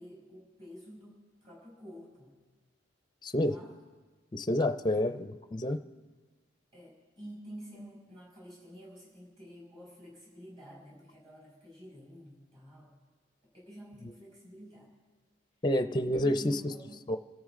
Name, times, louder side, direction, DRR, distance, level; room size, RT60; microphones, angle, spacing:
voice 1, 0.0-2.4 3.4-3.7 5.0-5.2 6.7-12.9 13.5-14.9 15.9-17.1, equal, 25° right, -4 dB, 6.2 m, -50 dB
voice 2, 3.2-3.5 4.3-5.8 15.6-16.6 17.1-17.2, left 1 dB, 25° left, 9 dB, 0.5 m, -28 dB
27.0 x 14.0 x 3.7 m, 1.4 s
head